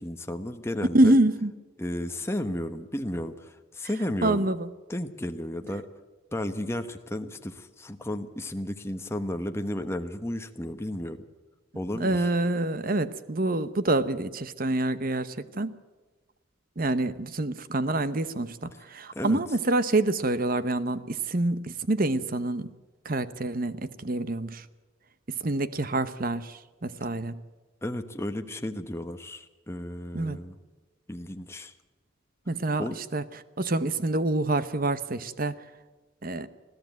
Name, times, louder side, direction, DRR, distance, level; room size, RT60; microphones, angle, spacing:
voice 1, 0.0-1.2 1.8-4.5 4.9-5.8 6.3-11.2 11.7-12.3 19.1-19.4 27.8-30.6 31.1-31.7 32.8-32.9, left 1 dB, 15° left, 6 dB, 1.1 m, -33 dB
voice 2, 0.9-1.5 4.2-4.7 11.9-15.7 16.8-22.7 23.0-24.7 25.4-27.4 30.1-30.4 32.5-33.2 33.6-35.5 36.2-36.5, right 2 dB, 45° right, 14 dB, 0.9 m, -26 dB
21.0 x 14.5 x 9.3 m, 1.2 s
head